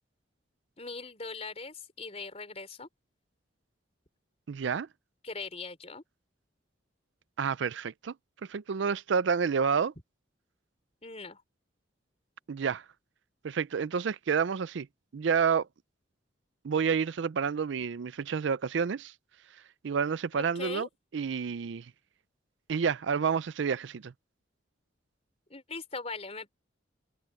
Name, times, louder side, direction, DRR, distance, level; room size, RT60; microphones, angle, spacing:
voice 1, 0.8-2.9 5.2-6.0 11.0-11.4 20.4-20.9 25.5-26.5, left 3 dB, 35° left, 4.4 m, -40 dB
voice 2, 4.5-4.9 7.4-8.1 8.5-9.9 12.5-12.8 13.4-14.9 15.1-15.7 16.6-19.1 19.8-20.9 21.1-21.9 22.7-24.1, right 6 dB, 75° right, 0.4 m, -29 dB
head